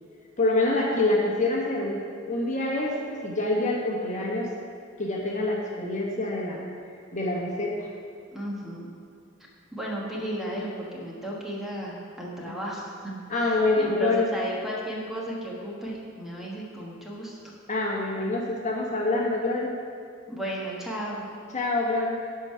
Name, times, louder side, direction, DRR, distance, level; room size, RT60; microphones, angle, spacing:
voice 1, 0.4-4.5 5.0-6.7 7.1-7.9 13.3-14.3 17.7-19.7 21.5-22.2, left 2 dB, 40° left, -2 dB, 1.2 m, -26 dB
voice 2, 8.3-8.9 9.7-17.4 20.3-21.2, right 1 dB, ahead, -4 dB, 1.3 m, -34 dB
11.5 x 4.8 x 5.6 m, 2.3 s
head